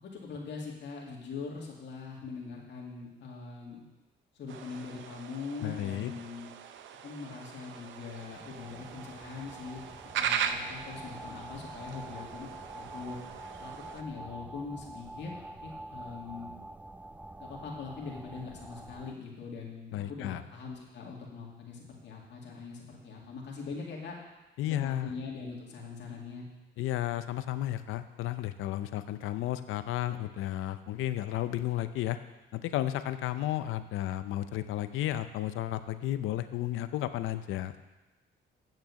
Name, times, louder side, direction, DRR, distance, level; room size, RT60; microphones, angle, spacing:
voice 1, 0.0-3.9 4.3-6.5 7.0-12.5 12.7-13.2 13.6-15.3 15.6-16.5 17.4-24.2 24.6-26.5, left 4 dB, 60° left, -2 dB, 2.2 m, -42 dB
sound 1, 4.5-14.0, right 8 dB, 70° right, 0.7 m, -39 dB
voice 2, 5.6-6.1 19.9-20.4 24.6-25.1 26.8-32.2 32.5-37.8, left 13 dB, 90° left, 11 dB, 0.6 m, -33 dB
sound 2, 8.0-19.1, right 2 dB, 10° right, 0.3 m, -47 dB
8.4 x 6.5 x 7.1 m, 1.1 s
cardioid pair, 90°, 20 cm